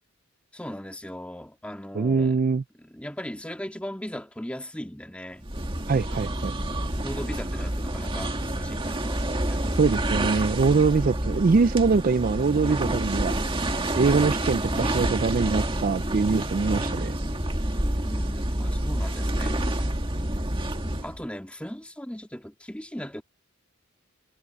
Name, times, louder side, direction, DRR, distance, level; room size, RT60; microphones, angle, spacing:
voice 1, 0.5-2.4 2.8-5.5 7.0-9.2 9.5-9.9 18.0-19.9 20.6-23.2, equal, 5° left, 2.0 m, -38 dB
voice 2, 1.9-2.6 5.9-6.5 9.7-13.4 13.9-17.2, right 4 dB, 40° right, 0.4 m, -23 dB
sound 1, 5.4-21.2, right 1 dB, 25° right, 2.0 m, -28 dB
head